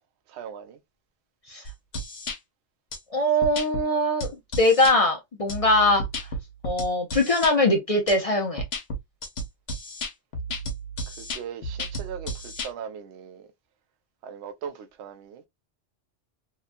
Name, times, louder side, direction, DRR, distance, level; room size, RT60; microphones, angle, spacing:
voice 1, 0.3-0.8 11.1-13.5 14.2-15.4, right 7 dB, 70° right, 0.8 m, -39 dB
sound 1, 1.7-2.4 2.9-3.0 3.4-3.8 4.2-5.0 5.5-7.5 8.1-8.2 8.6-12.7, equal, 60° left, 1.0 m, -33 dB
voice 2, 3.1-4.3 4.6-6.0 6.6-8.6, left 1 dB, 45° left, 0.5 m, -21 dB
2.9 x 2.2 x 2.4 m
omnidirectional pair, 1.2 m